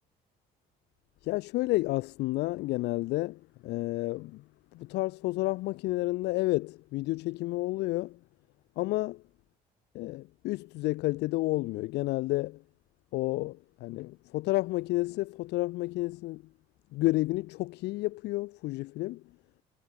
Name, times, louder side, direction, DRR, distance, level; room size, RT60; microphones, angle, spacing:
voice 1, 1.2-4.4 4.7-8.2 8.8-9.2 9.9-12.6 13.1-16.4 16.9-19.2, left 19 dB, 85° left, 1.0 m, -31 dB
cardioid pair, 110°, 17 cm